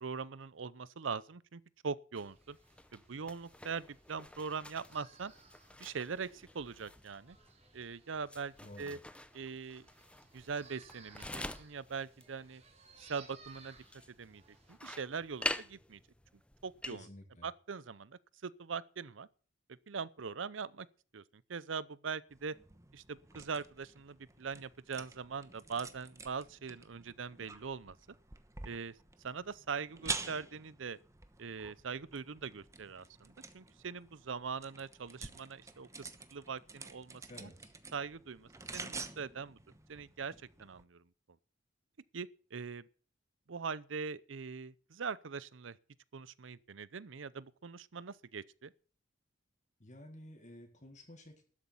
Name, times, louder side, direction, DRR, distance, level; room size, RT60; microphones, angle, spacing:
voice 1, 0.0-2.6 2.9-5.3 5.8-7.4 7.7-9.0 9.3-9.9 10.3-12.6 13.0-13.8 14.2-14.4 14.7-16.0 16.6-17.1 17.4-19.3 19.9-20.9 21.1-21.2 21.5-22.6 22.9-28.0 28.6-29.0 29.2-31.0 31.4-37.5 37.9-39.6 39.9-40.3 40.6-41.0 42.1-42.9 43.5-45.8 46.1-48.7, right 5 dB, 85° right, 0.6 m, -42 dB
sound 1, 2.2-17.0, left 1 dB, 5° left, 0.6 m, -47 dB
sound 2, 2.2-14.8, right 5 dB, 35° right, 2.1 m, -62 dB
voice 2, 8.6-9.0 16.9-17.5 37.3-37.7 49.8-51.4, left 1 dB, 40° left, 2.0 m, -52 dB
sound 3, 22.3-40.8, right 3 dB, 15° right, 1.0 m, -48 dB
12.5 x 8.2 x 7.8 m
head